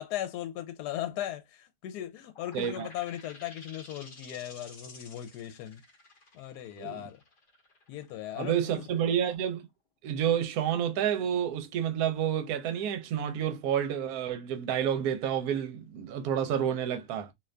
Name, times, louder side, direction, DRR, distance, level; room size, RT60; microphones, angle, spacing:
voice 1, 0.0-5.8 6.3-7.2 7.9-8.9, left 12 dB, 80° left, 1.1 m, -38 dB
sound 1, 2.3-9.6, left 3 dB, 40° left, 1.0 m, -52 dB
voice 2, 2.5-2.9 6.8-7.0 8.4-9.7 10.0-17.3, right 9 dB, 70° right, 1.1 m, -29 dB
2.8 x 2.5 x 3.2 m
omnidirectional pair, 1.7 m